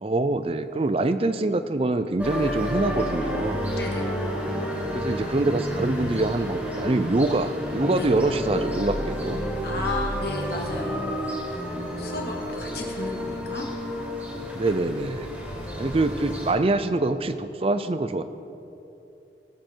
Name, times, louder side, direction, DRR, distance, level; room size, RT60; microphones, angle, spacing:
voice 1, 0.0-3.6 4.9-9.4 14.5-15.3 15.7-18.2, right 2 dB, 35° right, 12 dB, 0.5 m, -25 dB
sound 1, 2.2-16.5, equal, 10° right, 2.1 m, -30 dB
voice 2, 9.6-11.1 11.7-13.7, left 2 dB, 65° left, 0 dB, 1.9 m, -33 dB
19.0 x 7.7 x 4.6 m, 2.9 s
head